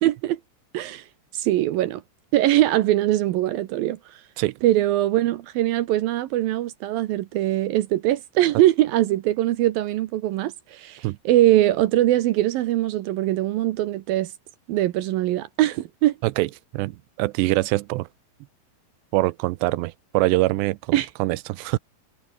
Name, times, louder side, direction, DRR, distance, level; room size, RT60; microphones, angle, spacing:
voice 1, 0.0-0.4 0.7-1.1 1.3-2.0 2.3-4.2 4.6-14.3 14.7-16.2 20.9-21.1, right 14 dB, 75° right, 2.4 m, -22 dB
voice 2, 16.7-18.1 19.1-21.8, right 20 dB, 90° right, 2.9 m, -24 dB
omnidirectional pair, 4.8 m